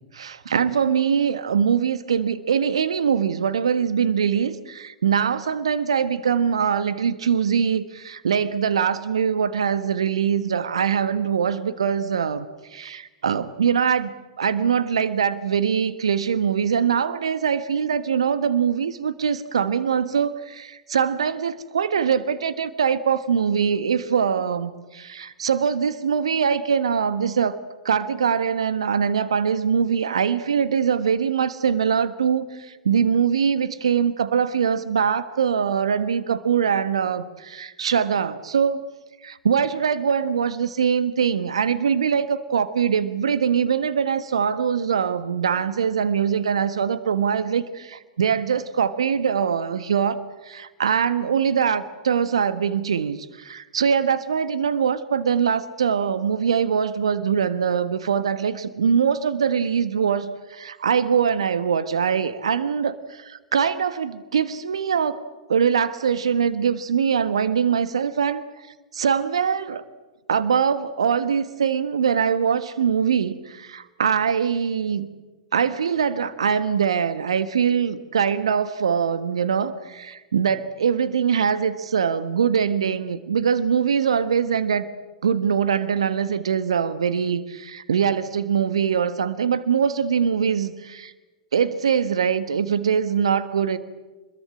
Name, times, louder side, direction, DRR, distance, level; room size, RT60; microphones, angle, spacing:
voice 1, 0.1-27.6 27.8-38.8 39.2-65.2 65.5-68.5 68.9-69.8 70.3-75.1 75.5-84.9 85.2-91.1 91.5-93.8, right 7 dB, 70° right, 13 dB, 1.4 m, -23 dB
26.5 x 22.0 x 8.7 m, 1.2 s
figure-of-eight pair, 100°, 3 cm